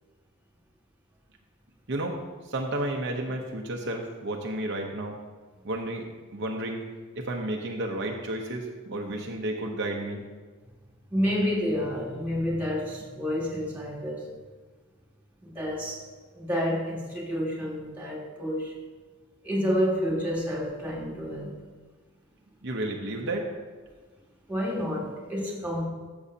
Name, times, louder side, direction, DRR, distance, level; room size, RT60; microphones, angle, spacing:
voice 1, 2.4-5.2 5.6-6.8 7.2-10.2 22.6-23.5, right 1 dB, 55° right, 1 dB, 0.8 m, -32 dB
voice 2, 11.1-14.3 15.4-16.0 16.3-18.8 19.4-21.5 24.5-25.9, equal, 10° right, -3 dB, 2.4 m, -29 dB
13.5 x 7.0 x 2.8 m, 1.4 s
head